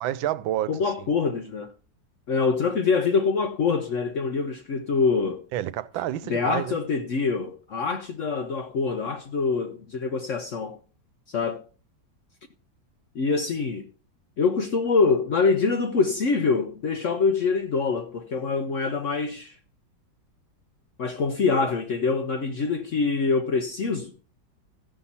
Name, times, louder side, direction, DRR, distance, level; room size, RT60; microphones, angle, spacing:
voice 1, 0.0-1.1 5.5-6.8, right 13 dB, 90° right, 1.4 m, -29 dB
voice 2, 0.7-1.7 2.3-5.4 6.2-10.8 11.3-11.6 13.1-13.9 14.4-19.6 21.0-24.1, left 4 dB, 60° left, 0.8 m, -25 dB
15.0 x 5.7 x 4.1 m
omnidirectional pair, 2.1 m